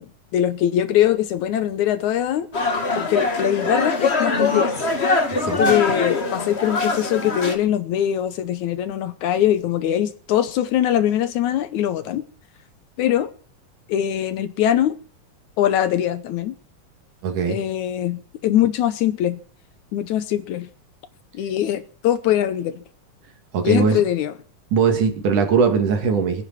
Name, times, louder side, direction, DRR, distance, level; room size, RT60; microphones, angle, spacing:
voice 1, 0.0-2.5 3.0-4.8 5.4-12.2 13.0-13.3 13.9-15.0 15.6-16.5 17.5-19.4 19.9-20.7 21.3-22.8 23.6-24.3, left 11 dB, 70° left, 2.1 m, -22 dB
sound 1, 2.5-7.6, left 3 dB, 25° left, 1.6 m, -22 dB
voice 2, 5.3-5.6 17.2-17.6 23.5-24.0 24.7-26.4, right 6 dB, 70° right, 3.8 m, -20 dB
22.5 x 10.0 x 5.9 m
omnidirectional pair, 3.8 m